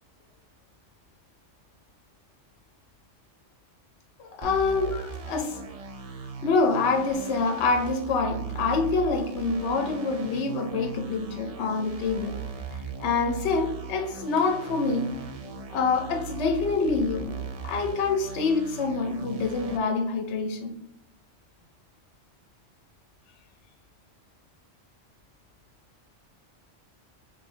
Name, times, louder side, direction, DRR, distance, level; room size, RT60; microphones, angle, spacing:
voice 1, 4.2-5.6 6.4-12.4 13.0-15.1 15.7-17.3 17.6-20.7, left 4 dB, 70° left, 5 dB, 0.9 m, -26 dB
sound 1, 4.4-19.8, right 5 dB, 70° right, 0.3 m, -38 dB
3.2 x 3.1 x 3.8 m, 0.84 s
omnidirectional pair, 1.2 m